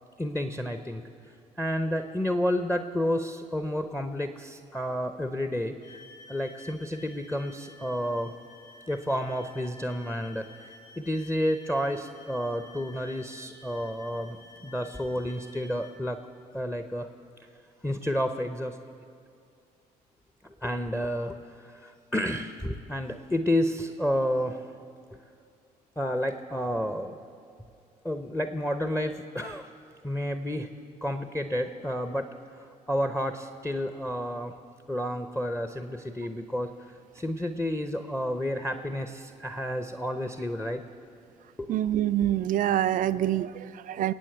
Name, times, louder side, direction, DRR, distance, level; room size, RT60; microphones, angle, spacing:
voice 1, 0.2-6.0 6.3-8.3 8.9-16.2 16.5-17.1 17.8-18.8 20.4-24.6 26.0-27.2 28.0-29.7 30.0-30.7 31.0-32.3 32.5-34.5 34.9-40.8 41.6-41.8, equal, 5° left, 8 dB, 0.8 m, -30 dB
sound 1, 5.8-16.0, left 3 dB, 70° left, 3.5 m, -52 dB
voice 2, 41.7-44.1, right 12 dB, 40° right, 15 dB, 0.4 m, -26 dB
26.0 x 8.8 x 4.6 m, 2.5 s
figure-of-eight pair, 50°, 21 cm